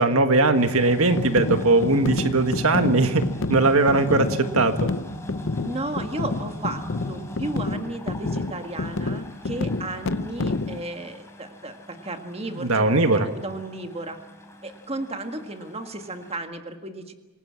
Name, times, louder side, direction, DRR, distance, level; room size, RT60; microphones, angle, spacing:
voice 1, 0.0-3.2 3.5-4.9 12.6-13.3, right 2 dB, 75° right, 8 dB, 1.6 m, -20 dB
sound 1, 0.5-16.4, equal, 10° left, 3.8 m, -41 dB
sound 2, 1.2-10.8, left 3 dB, 55° left, 0.7 m, -29 dB
voice 2, 5.6-14.2 14.6-17.1, right 2 dB, 25° right, 6 dB, 1.8 m, -34 dB
27.0 x 18.5 x 7.5 m, 1.1 s
head